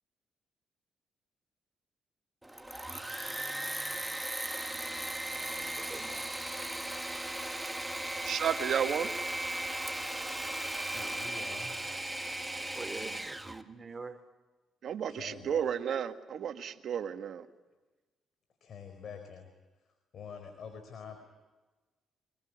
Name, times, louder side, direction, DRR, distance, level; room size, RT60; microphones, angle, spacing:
Engine / Mechanisms, 2.4-13.6, right 1 dB, 10° right, 1.7 m, -37 dB
voice 1, 5.3-6.4 12.6-14.2, right 4 dB, 30° right, 7 dB, 3.4 m, -45 dB
voice 2, 8.2-9.1 13.0-13.2 14.8-17.5, right 8 dB, 65° right, 8 dB, 1.9 m, -33 dB
voice 3, 10.9-11.9 15.1-15.6 18.6-19.5 20.1-21.2, left 6 dB, 60° left, 6 dB, 4.5 m, -46 dB
25.5 x 21.0 x 9.6 m, 1.2 s
cardioid pair, 90°, 0 cm